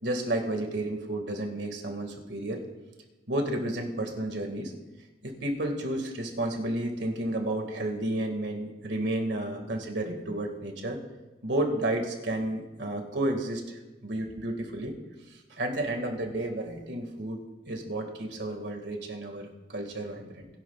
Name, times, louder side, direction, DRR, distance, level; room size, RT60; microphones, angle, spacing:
voice 1, 0.0-2.6 3.3-4.7 5.2-11.0 11.4-14.9 15.3-17.4 17.7-20.5, right 1 dB, 80° right, 4 dB, 1.9 m, -32 dB
20.0 x 11.0 x 2.4 m, 1.1 s
head